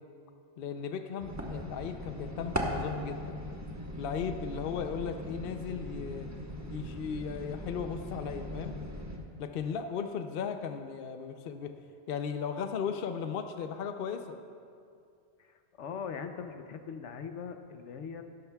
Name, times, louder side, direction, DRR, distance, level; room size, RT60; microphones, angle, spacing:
voice 1, 0.6-3.4 4.0-6.3 6.7-8.8 9.4-11.7 12.1-14.4, left 7 dB, 55° left, 7 dB, 0.7 m, -36 dB
sound 1, 1.2-9.2, equal, 15° right, 1.0 m, -39 dB
voice 2, 15.4-18.2, left 6 dB, 80° left, 7 dB, 1.0 m, -41 dB
16.5 x 12.5 x 2.3 m, 2.3 s
omnidirectional pair, 1.2 m